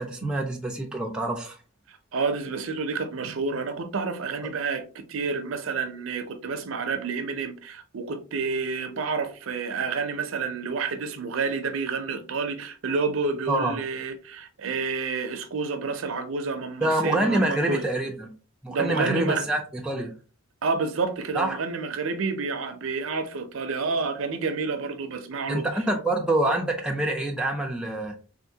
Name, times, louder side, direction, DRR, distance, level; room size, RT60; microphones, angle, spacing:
voice 1, 0.0-1.6 13.5-13.8 16.8-18.3 18.6-20.1 21.3-21.6 25.5-28.1, right 1 dB, 5° right, 0.4 m, -26 dB
voice 2, 2.1-17.8 18.7-19.4 20.6-25.7, right 4 dB, 65° right, 0.5 m, -29 dB
3.5 x 2.5 x 2.7 m
head